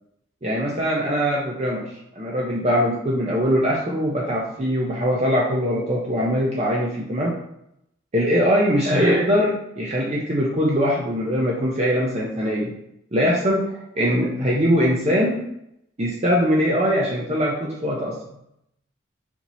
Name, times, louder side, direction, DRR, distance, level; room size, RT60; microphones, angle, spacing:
voice 1, 0.4-1.8 2.1-7.3 8.1-12.7 13.1-15.4 16.0-18.1, equal, 35° right, -4 dB, 0.6 m, -22 dB
4.4 x 2.9 x 4.0 m, 0.77 s
head